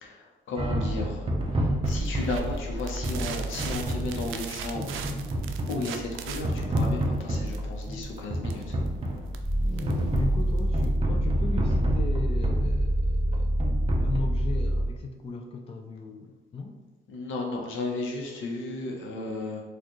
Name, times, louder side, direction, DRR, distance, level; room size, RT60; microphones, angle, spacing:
voice 1, 0.0-1.2 1.5-4.9 5.7-8.6 17.1-19.6, left 2 dB, 80° left, 0 dB, 0.8 m, -34 dB
sound 1, 0.6-14.2, right 1 dB, 30° right, 0.6 m, -30 dB
sound 2, 1.8-11.0, right 5 dB, 85° right, 0.4 m, -40 dB
sound 3, 9.4-15.0, equal, ahead, 1.0 m, -26 dB
voice 2, 9.8-13.6 14.0-16.8, left 4 dB, 30° left, 4 dB, 0.4 m, -36 dB
4.3 x 2.4 x 3.0 m, 1.2 s
cardioid pair, 90°, 20 cm